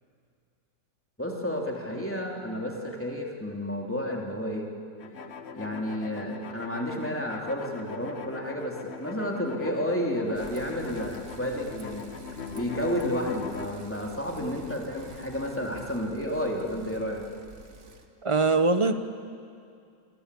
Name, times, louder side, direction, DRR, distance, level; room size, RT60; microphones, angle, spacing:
voice 1, 1.2-4.7 5.5-12.1 12.5-17.2, equal, 10° left, -1 dB, 3.1 m, -31 dB
sound 1, 5.0-13.7, left 6 dB, 45° left, 1.4 m, -40 dB
Bicycle, 10.3-18.1, right 3 dB, 50° right, 1.9 m, -49 dB
voice 2, 18.2-18.9, right 3 dB, 25° right, 10 dB, 0.9 m, -22 dB
29.5 x 22.0 x 8.4 m, 2.4 s
omnidirectional pair, 1.7 m